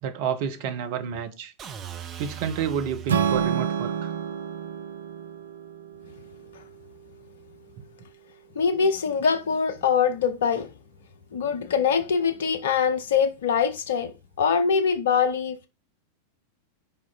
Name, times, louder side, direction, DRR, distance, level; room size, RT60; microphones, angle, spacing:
voice 1, 0.0-1.5 2.2-3.9, right 8 dB, 50° right, 1.1 m, -29 dB
sound 1, 1.6-3.5, right 9 dB, 30° right, 1.0 m, -39 dB
Strum, 3.1-7.3, right 8 dB, 70° right, 0.6 m, -29 dB
voice 2, 8.5-10.7 11.3-14.1 14.4-15.7, left 6 dB, 60° left, 0.9 m, -23 dB
5.6 x 5.5 x 4.0 m
figure-of-eight pair, 90°, 0 cm